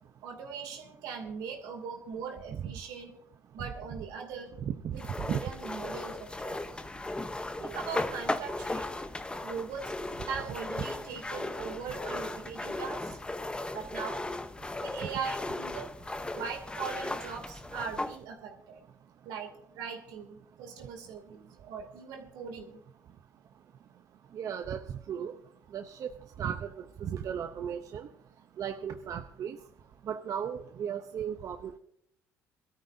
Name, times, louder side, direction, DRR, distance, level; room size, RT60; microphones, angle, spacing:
voice 1, 0.2-3.1 3.5-4.5 4.9-5.0 5.3-6.6 7.6-9.0 9.4-9.9 10.3-13.2 13.7-14.2 14.8-15.9 16.3-18.8 19.2-22.8, right 6 dB, 80° right, 4 dB, 2.7 m, -40 dB
sound 1, 5.0-18.2, left 2 dB, 15° left, 0.9 m, -36 dB
voice 2, 24.4-24.8 25.1-25.3 25.7-26.1 26.4-26.7 27.0-28.1 28.6-29.6 30.1-31.8, right 8 dB, 55° right, 7 dB, 0.8 m, -35 dB
22.0 x 13.0 x 2.7 m, 0.71 s
supercardioid pair, 80°, 7 cm